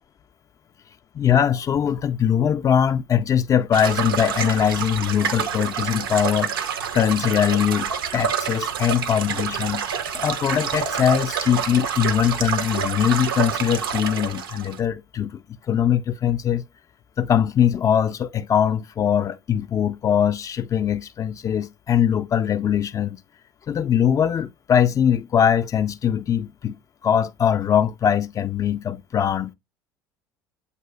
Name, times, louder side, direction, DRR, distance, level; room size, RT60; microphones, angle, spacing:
voice 1, 1.1-6.5 6.9-9.8 10.1-16.6 17.2-23.2 23.7-26.8 27.0-29.5, left 9 dB, 30° left, 0.3 m, -21 dB
sound 1, 3.7-14.8, right 7 dB, 75° right, 0.4 m, -27 dB
7.5 x 2.8 x 2.2 m
figure-of-eight pair, 65°, 12 cm